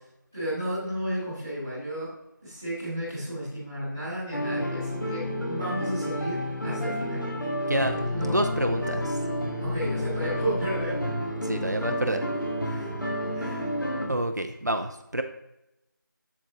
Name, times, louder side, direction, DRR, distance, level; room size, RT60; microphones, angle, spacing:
voice 1, 0.3-2.1 2.4-7.3 7.9-8.4 9.6-11.0 11.6-11.8 12.6-12.9 13.3-13.7, equal, 5° left, -15 dB, 1.5 m, -33 dB
sound 1, 4.3-14.1, equal, 70° left, 1.9 m, -30 dB
voice 2, 7.7-9.2 11.4-12.2 14.1-15.2, right 1 dB, 55° right, 6 dB, 0.6 m, -28 dB
7.6 x 7.2 x 2.9 m, 0.86 s
figure-of-eight pair, 180°, 11 cm